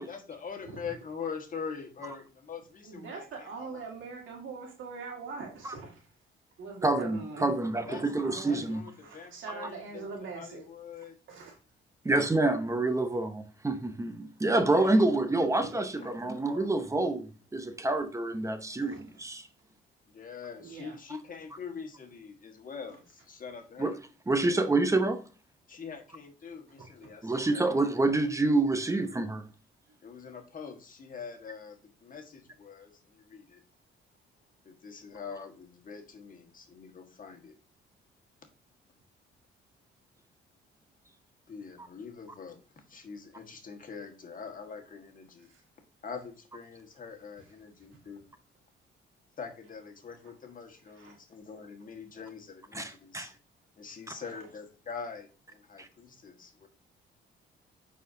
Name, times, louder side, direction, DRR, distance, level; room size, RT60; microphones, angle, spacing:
voice 1, 0.0-3.9 7.8-8.1 8.4-11.1 14.5-15.5 15.7-16.7 20.1-24.0 25.7-27.7 30.0-33.6 34.6-37.6 41.5-45.5 46.0-48.2 49.4-53.3 53.8-56.7, left 6 dB, 45° left, 1.5 m, -44 dB
voice 2, 2.8-6.1 6.6-7.5 8.0-8.7 9.0-10.6 11.0-11.6 15.3-15.7 18.8-19.0 20.6-21.0 26.8-27.1 29.9-30.0 45.5-45.6 47.9-48.0 51.0-51.2 54.1-54.4, right 4 dB, 80° right, 1.9 m, -43 dB
voice 3, 6.8-8.8 12.0-19.5 23.8-23.9 24.3-25.2 27.2-29.4 52.7-53.3 55.8-55.9, right 2 dB, 15° right, 0.8 m, -27 dB
9.1 x 4.3 x 2.7 m
cardioid pair, 90°, 20 cm